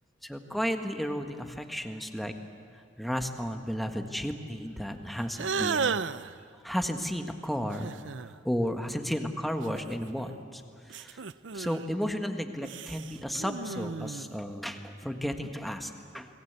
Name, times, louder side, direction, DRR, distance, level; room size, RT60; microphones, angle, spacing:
voice 1, 0.2-2.3 3.0-6.0 6.6-7.9 8.4-10.6 10.9-11.2 11.5-16.3, equal, ahead, 5 dB, 1.6 m, -33 dB
sound 1, 5.4-6.4 7.7-8.4 9.6-10.4 10.9-11.9 12.6-14.4, right 5 dB, 85° right, 0.6 m, -34 dB
29.0 x 21.5 x 8.2 m, 2.2 s
head